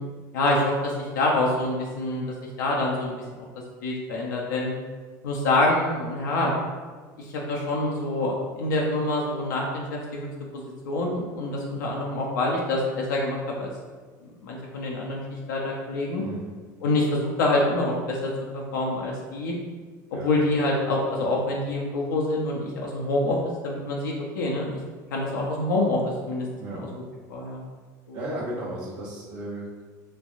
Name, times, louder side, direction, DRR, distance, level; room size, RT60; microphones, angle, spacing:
voice 1, 0.3-2.2 2.6-3.1 3.8-4.7 5.2-6.5 7.3-10.3 10.5-13.7 14.4-15.2 15.5-16.2 16.8-19.5 20.1-23.4 23.6-24.7 25.1-26.5 26.8-26.9 27.3-27.6 28.1-28.2, left 2 dB, 85° left, -2 dB, 0.5 m, -26 dB
voice 2, 28.1-29.8, right 1 dB, 50° right, -8 dB, 0.8 m, -34 dB
3.2 x 2.3 x 2.5 m, 1.4 s
supercardioid pair, 95°, 10 cm